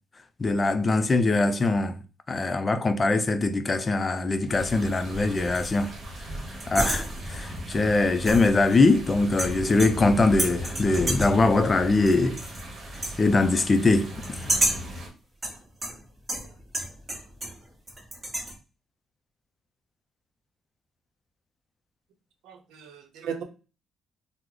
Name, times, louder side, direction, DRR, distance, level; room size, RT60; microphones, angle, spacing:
voice 1, 0.4-2.0 2.3-5.9 6.7-12.4 13.2-14.5, left 3 dB, 30° left, 0.4 m, -22 dB
sound 1, 4.5-15.1, equal, 50° right, 1.1 m, -37 dB
sound 2, 5.4-5.8 6.6-7.5 8.3-9.0 9.4-10.1 10.4-11.4 12.1-12.6 12.9-13.2 14.2-14.9 15.4-17.6 17.9-18.5, right 1 dB, 25° right, 1.1 m, -30 dB
voice 2, 22.4-23.4, right 7 dB, 90° right, 0.6 m, -36 dB
3.0 x 2.0 x 3.7 m
cardioid pair, 90°, 0 cm